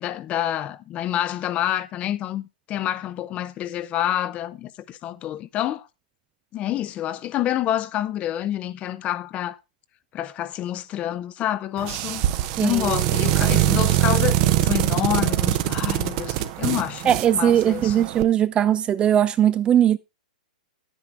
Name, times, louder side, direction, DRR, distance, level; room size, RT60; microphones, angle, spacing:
voice 1, 0.0-5.9 6.5-9.6 10.1-12.2 12.6-18.1, left 12 dB, 30° left, 0.7 m, -28 dB
sound 1, 11.8-18.2, right 14 dB, 40° right, 0.9 m, -23 dB
voice 2, 12.6-13.0 17.0-20.0, right 10 dB, 20° right, 0.4 m, -19 dB
10.0 x 9.2 x 3.4 m
hypercardioid pair, 120°, 5 cm